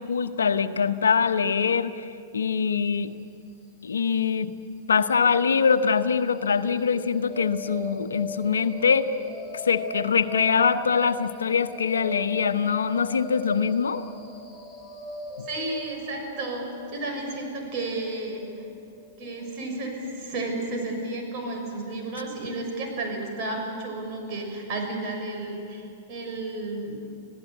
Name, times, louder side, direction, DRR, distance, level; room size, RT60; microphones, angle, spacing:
voice 1, 0.0-2.1 2.3-3.1 3.8-4.5 4.9-9.1 9.6-14.1 15.4-15.5, left 6 dB, 80° left, 10 dB, 1.0 m, -23 dB
sound 1, 6.5-20.5, left 1 dB, ahead, 5.5 m, -39 dB
voice 2, 15.5-18.6 19.2-27.0, right 2 dB, 45° right, 2 dB, 6.6 m, -32 dB
26.5 x 17.0 x 8.3 m, 2.5 s
hypercardioid pair, 110°, 0 cm